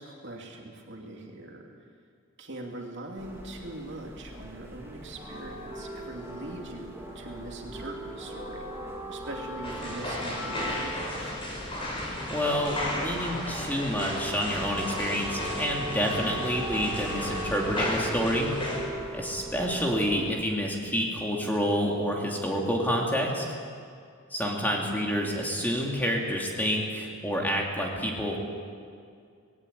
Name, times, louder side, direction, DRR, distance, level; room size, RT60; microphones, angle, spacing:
voice 1, 0.0-1.7 2.4-8.7 9.1-11.3 25.1-25.2, right 1 dB, 55° right, 1 dB, 2.7 m, -42 dB
sound 1, 3.2-20.4, right 1 dB, 10° right, 2.3 m, -39 dB
sound 2, 9.6-18.8, left 1 dB, 25° left, 5.3 m, -34 dB
voice 2, 12.3-18.5 19.1-23.5 24.3-28.4, equal, 10° left, -1 dB, 2.7 m, -28 dB
19.5 x 18.0 x 8.3 m, 2.2 s
head